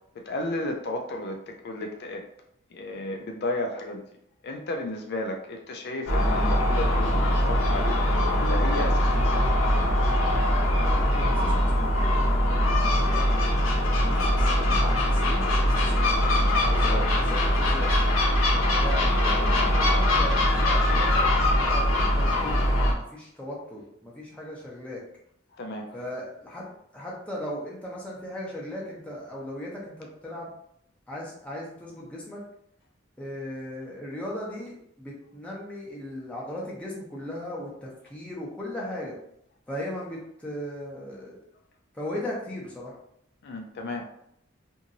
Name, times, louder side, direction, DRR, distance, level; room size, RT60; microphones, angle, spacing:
voice 1, 0.1-2.2 2.7-4.0 4.4-9.7 16.7-17.1 25.6-26.0 43.4-44.0, left 2 dB, 55° left, 3 dB, 0.4 m, -33 dB
Gull seagull, 6.1-22.9, left 1 dB, 85° left, 0.8 m, -22 dB
voice 2, 10.9-11.8 12.6-17.9 18.8-25.0 25.9-26.7 26.9-30.5 31.1-32.4 33.2-39.1 39.7-41.4 41.9-42.9 43.9-44.0, left 1 dB, 5° left, -5 dB, 0.7 m, -38 dB
2.9 x 2.6 x 2.6 m, 0.72 s
head